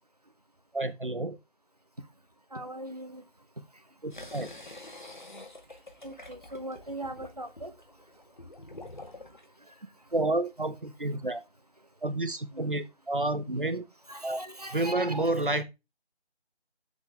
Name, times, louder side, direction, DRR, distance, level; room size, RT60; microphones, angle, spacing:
voice 1, 0.7-1.4 4.0-4.5 10.1-11.4 12.0-13.8 14.2-14.4 14.7-15.6, right 2 dB, 55° right, 1.3 m, -30 dB
voice 2, 2.5-3.2 6.0-7.7 12.5-12.7 14.1-15.3, right 1 dB, 35° right, 1.0 m, -39 dB
sound 1, 4.1-9.5, left 2 dB, 45° left, 1.8 m, -47 dB
8.5 x 6.8 x 3.3 m
figure-of-eight pair, 170°, 32 cm